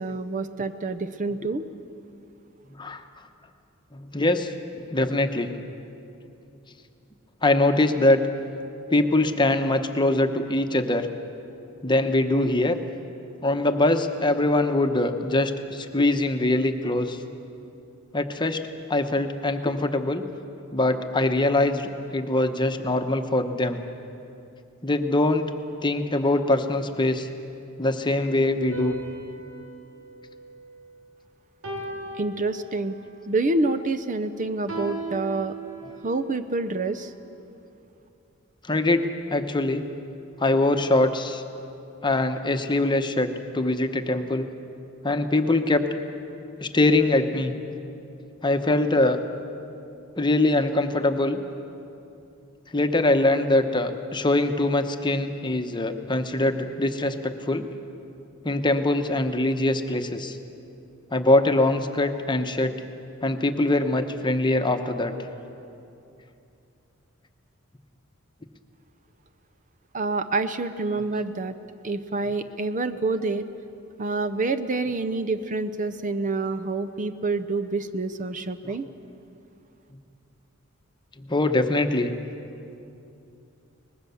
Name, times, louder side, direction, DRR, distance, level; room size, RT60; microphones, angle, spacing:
voice 1, 0.0-1.6 32.2-33.0 33.3-35.6 36.0-37.1 69.9-71.5 71.8-73.4 74.0-78.9, right 3 dB, 40° right, 11 dB, 0.7 m, -27 dB
voice 2, 2.7-3.0 3.9-5.5 7.4-8.2 8.9-11.1 11.8-12.8 13.4-17.2 18.1-18.6 18.9-20.2 20.7-23.8 24.8-25.4 25.8-27.3 27.8-29.0 38.7-39.8 40.4-41.4 42.0-43.3 43.5-44.5 45.0-45.8 46.6-47.5 48.4-49.2 50.2-51.4 52.7-57.7 58.4-60.4 61.1-62.7 63.2-65.1 78.6-78.7 81.2-82.1, left 2 dB, 20° left, 7 dB, 1.1 m, -23 dB
sound 1, 28.7-31.1 31.6-33.1 34.7-36.2, right 2 dB, 85° right, 4.4 m, -37 dB
23.5 x 20.0 x 7.1 m, 2.7 s
head